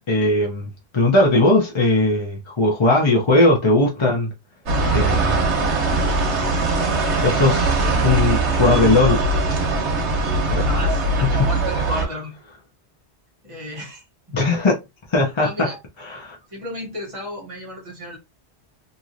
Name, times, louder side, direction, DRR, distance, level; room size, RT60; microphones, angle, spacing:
voice 1, 0.1-4.3 4.9-5.4 7.1-7.8 8.0-9.2 10.5-10.6 11.4-11.5 14.3-14.8 15.1-15.5 16.1-16.4, left 2 dB, 30° left, 0.6 m, -18 dB
sound 1, 4.7-12.0, right 2 dB, 85° right, 1.2 m, -21 dB
voice 2, 10.6-12.3 13.4-14.5 15.4-15.8 16.5-18.2, left 1 dB, 30° right, 1.2 m, -33 dB
3.0 x 2.7 x 2.5 m
omnidirectional pair, 1.1 m